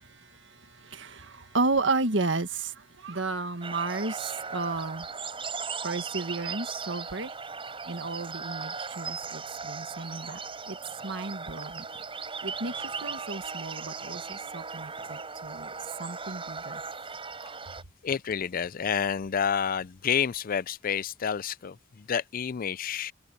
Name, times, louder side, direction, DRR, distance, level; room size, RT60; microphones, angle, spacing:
voice 1, 0.0-5.1 5.8-7.3 7.9-10.4 10.7-10.8 11.0-11.8 12.4-15.7 16.0-16.8, right 3 dB, 70° right, 1.8 m, -33 dB
sound 1, 3.6-17.8, right 5 dB, 30° right, 5.9 m, -38 dB
voice 2, 18.0-23.1, left 7 dB, 45° left, 0.4 m, -29 dB
head